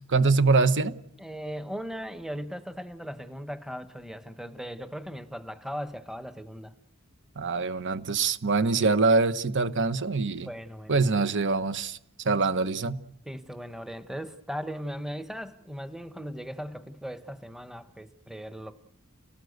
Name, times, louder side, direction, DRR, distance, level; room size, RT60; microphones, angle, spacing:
voice 1, 0.1-1.0 7.4-10.5 10.9-12.0 12.2-13.0, right 4 dB, 55° right, 1.1 m, -24 dB
voice 2, 1.2-6.7 10.4-11.0 13.2-18.7, equal, ahead, 1.1 m, -38 dB
29.5 x 18.5 x 8.1 m
head